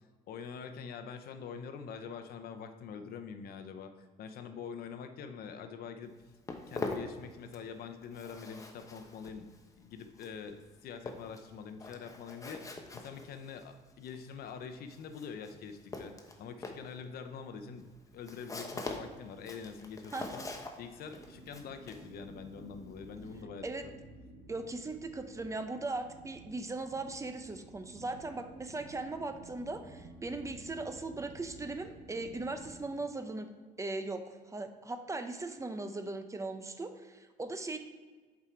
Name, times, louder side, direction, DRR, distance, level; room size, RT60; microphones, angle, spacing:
voice 1, 0.3-6.1 6.7-9.5 9.8-17.9 18.1-20.4 20.8-23.9, left 6 dB, 65° left, 8 dB, 0.7 m, -45 dB
Walk footsteps, 6.0-23.4, left 2 dB, 20° left, 0.9 m, -44 dB
sound 1, 21.0-32.8, right 2 dB, 55° right, 2.4 m, -53 dB
voice 2, 24.5-33.5 33.8-37.8, right 2 dB, 20° right, 7 dB, 0.7 m, -39 dB
7.6 x 4.8 x 4.5 m, 1.4 s
cardioid pair, 110°, 17 cm